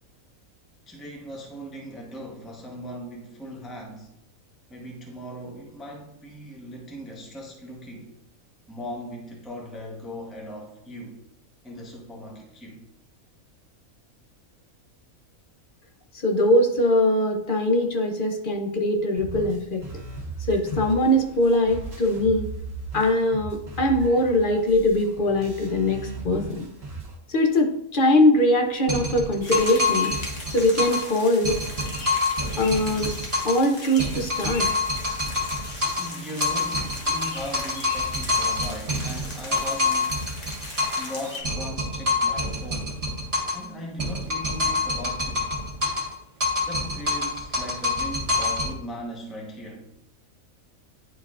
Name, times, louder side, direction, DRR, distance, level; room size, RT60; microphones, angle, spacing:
voice 1, 0.9-4.1 4.7-8.1 8.7-11.2 11.6-12.9 36.0-40.3 41.0-43.0 43.5-45.6 46.6-49.9, equal, ahead, 0.8 m, -38 dB
voice 2, 16.2-19.8 20.5-22.5 22.9-26.7 27.3-30.1 30.5-31.6 32.6-33.1 33.4-34.7, left 1 dB, 50° left, 0.7 m, -22 dB
sound 1, 19.2-27.2, right 3 dB, 45° right, 1.6 m, -37 dB
sound 2, 28.9-31.1 31.4-33.7 34.0-36.1 36.4-41.1 41.4-43.7 44.0-46.1 46.4-48.7, left 2 dB, 25° right, 1.4 m, -26 dB
sound 3, 29.4-41.4, left 2 dB, 30° left, 1.2 m, -39 dB
10.0 x 4.4 x 2.4 m
omnidirectional pair, 1.5 m